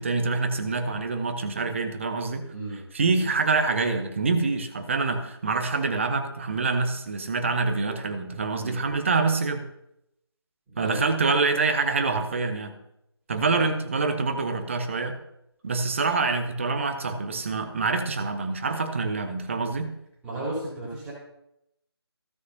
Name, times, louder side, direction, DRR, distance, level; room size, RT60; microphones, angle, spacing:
voice 1, 0.0-2.5 2.9-9.7 10.8-12.7 13.3-15.2 15.6-19.9, right 4 dB, 30° right, 7 dB, 1.0 m, -26 dB
voice 2, 2.5-2.8 8.6-8.9 10.7-11.0 13.5-13.7 20.2-21.1, right 2 dB, 5° right, -10 dB, 3.3 m, -34 dB
15.5 x 6.3 x 2.8 m, 0.81 s
figure-of-eight pair, 155°, 14 cm